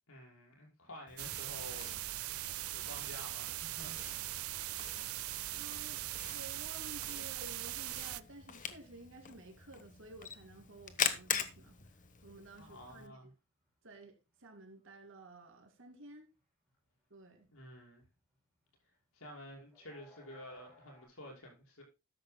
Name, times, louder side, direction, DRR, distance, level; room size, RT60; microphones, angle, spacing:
voice 1, 0.1-1.9 2.7-4.3 12.6-13.3 17.5-18.1 19.1-21.8, equal, 75° left, 5.7 m, -51 dB
Camera, 1.1-13.1, left 7 dB, 40° left, 1.2 m, -43 dB
sound 1, 1.2-8.2, right 15 dB, 80° right, 0.5 m, -40 dB
voice 2, 5.5-11.8 12.2-13.2 13.8-16.3 17.1-17.5, right 2 dB, 60° right, 2.6 m, -53 dB
sound 2, 9.1-9.2 9.4-9.5 9.8-9.9 10.1-21.1, left 2 dB, 5° left, 6.9 m, -68 dB
13.5 x 10.5 x 2.2 m
head